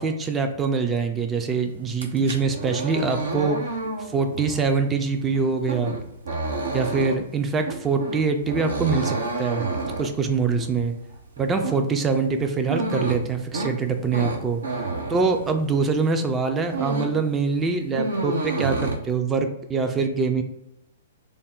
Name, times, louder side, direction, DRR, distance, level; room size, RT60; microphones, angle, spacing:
voice 1, 0.0-3.6 4.1-5.9 6.7-9.7 10.0-10.9 11.4-14.7 15.1-20.4, right 4 dB, 15° right, 5 dB, 0.4 m, -24 dB
sound 1, 1.9-16.0 16.3-17.3 17.5-19.0, right 3 dB, 65° right, 0.6 m, -30 dB
3.4 x 2.0 x 3.8 m, 0.85 s
figure-of-eight pair, 110°, 0 cm